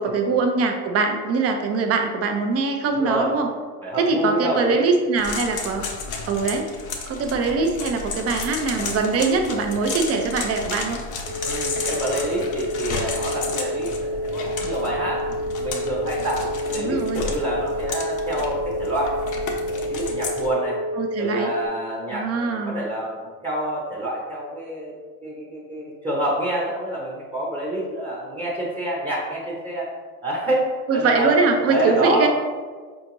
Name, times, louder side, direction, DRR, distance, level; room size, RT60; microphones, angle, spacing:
voice 1, 0.0-3.5 4.0-5.9 6.3-6.7 7.1-11.0 16.8-17.3 21.0-21.5 22.1-22.8 30.9-32.3, right 4 dB, 30° right, 4 dB, 0.7 m, -22 dB
voice 2, 2.9-3.3 3.8-4.8 11.4-15.3 15.6-19.2 19.6-20.8 21.2-24.9 25.2-29.9 30.2-32.3, right 1 dB, 10° right, -5 dB, 0.9 m, -27 dB
sound 1, 5.2-20.5, left 4 dB, 40° left, 0.8 m, -32 dB
sound 2, 11.2-21.7, equal, 65° right, 1.0 m, -29 dB
4.9 x 2.6 x 3.0 m, 1.5 s
hypercardioid pair, 80°, 46 cm